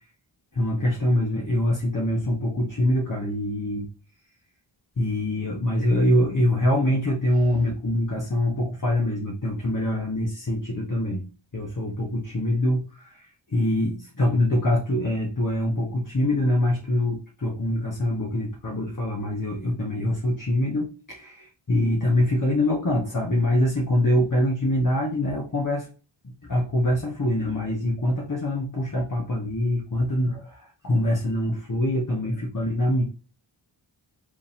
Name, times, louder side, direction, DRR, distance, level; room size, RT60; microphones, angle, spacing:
voice 1, 0.5-3.9 5.0-11.2 11.5-25.9 26.2-33.0, left 1 dB, 40° left, -1 dB, 1.1 m, -24 dB
5.1 x 2.8 x 3.5 m, 0.37 s
wide cardioid pair, 45°, 48 cm